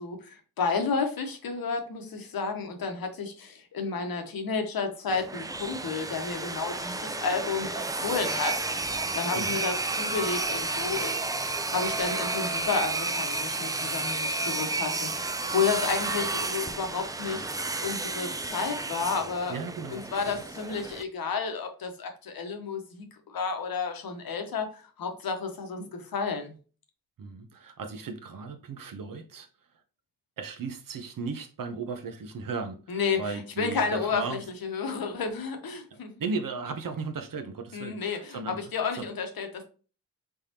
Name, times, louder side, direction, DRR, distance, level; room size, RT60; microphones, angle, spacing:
voice 1, 0.0-19.6 19.9-26.6 32.9-33.2 33.6-36.1 37.7-39.6, left 5 dB, 65° left, 1.0 m, -31 dB
sound 1, 5.1-21.0, right 3 dB, 10° right, 0.3 m, -31 dB
voice 2, 19.5-20.4 27.2-29.5 30.4-34.4 35.9-39.1, right 4 dB, 55° right, 0.8 m, -36 dB
3.5 x 3.5 x 2.8 m
supercardioid pair, 45°, 39 cm